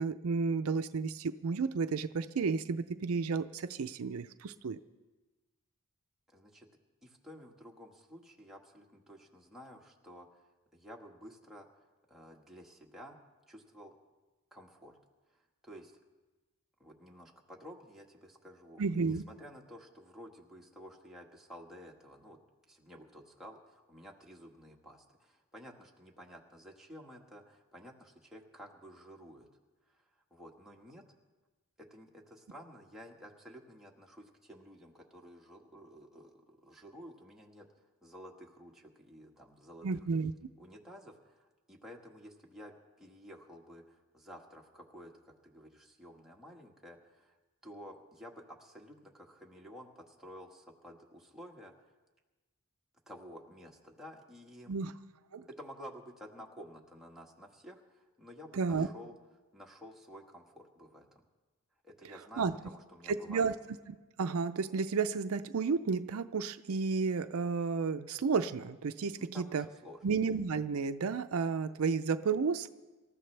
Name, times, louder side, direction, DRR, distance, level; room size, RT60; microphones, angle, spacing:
voice 1, 0.0-4.8 18.8-19.2 39.8-40.3 54.7-54.9 55.3-55.4 58.6-58.9 62.4-62.6 63.1-63.5 63.9-69.7 70.0-72.7, right 5 dB, 70° right, 10 dB, 0.5 m, -32 dB
voice 2, 6.3-6.7 7.0-11.7 12.1-13.2 13.5-13.9 14.5-15.0 15.3-16.0 16.8-22.4 22.7-29.5 29.9-30.0 30.3-31.0 31.8-37.7 38.0-40.1 40.6-47.4 47.6-51.9 53.1-54.8 55.5-59.1 59.5-61.2 61.8-63.5 69.2-70.0, equal, ahead, -2 dB, 1.5 m, -52 dB
25.5 x 13.5 x 3.3 m, 1.2 s
head